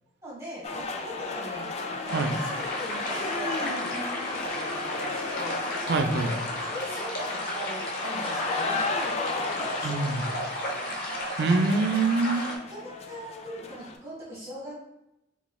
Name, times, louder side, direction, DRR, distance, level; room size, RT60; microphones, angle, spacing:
voice 1, 0.2-5.6 6.2-6.3 6.7-10.3 10.7-10.8 12.7-14.7, equal, 15° right, -7 dB, 1.3 m, -41 dB
sound 1, 0.6-14.0, left 3 dB, 35° left, 0.3 m, -34 dB
sound 2, 2.1-12.6, equal, 55° left, 0.7 m, -34 dB
voice 2, 5.9-6.3 9.8-10.2 11.4-12.5, right 3 dB, 65° right, 6 dB, 0.4 m, -24 dB
3.8 x 3.0 x 2.2 m, 0.86 s
head